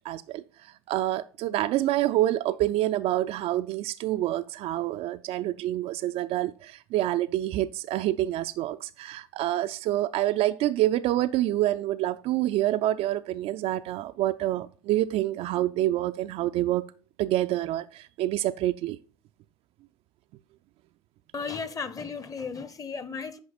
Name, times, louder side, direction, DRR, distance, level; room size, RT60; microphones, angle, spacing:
voice 1, 0.0-16.8 17.2-19.0, right 14 dB, 45° right, 0.4 m, -27 dB
voice 2, 21.3-23.4, left 5 dB, 25° left, 0.9 m, -35 dB
9.7 x 4.8 x 4.1 m
figure-of-eight pair, 65°, 14 cm